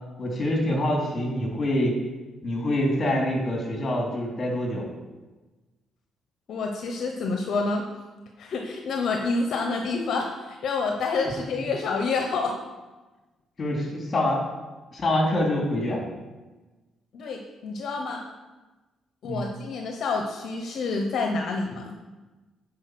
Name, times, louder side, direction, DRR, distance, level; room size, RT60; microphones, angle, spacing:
voice 1, 0.2-2.0 2.4-4.8 13.6-14.4 14.9-16.0 19.2-19.5, left 1 dB, 35° left, -1 dB, 3.0 m, -25 dB
voice 2, 6.5-7.8 8.4-12.5 17.1-18.2 19.2-21.9, left 4 dB, 65° left, 2 dB, 0.9 m, -28 dB
9.8 x 4.9 x 6.0 m, 1.2 s
cardioid pair, 90°, 0 cm